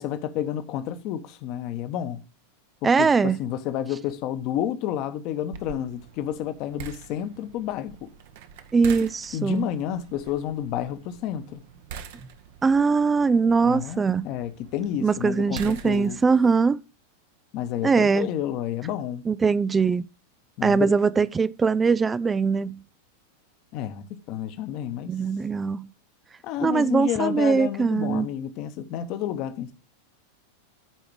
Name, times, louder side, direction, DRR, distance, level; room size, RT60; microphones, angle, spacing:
voice 1, 0.0-2.3 2.8-8.1 9.3-11.6 13.6-16.2 17.5-19.2 20.6-21.0 23.7-25.1 26.4-29.7, left 11 dB, 40° left, 1.1 m, -30 dB
voice 2, 2.8-3.4 8.7-9.7 12.6-14.3 15.0-16.8 17.8-18.3 19.3-20.1 20.6-22.8 25.1-25.9 26.6-28.3, right 5 dB, 15° right, 0.4 m, -21 dB
sound 1, 5.5-16.4, right 7 dB, 50° right, 1.1 m, -44 dB
14.0 x 4.9 x 4.7 m
figure-of-eight pair, 90°, 0 cm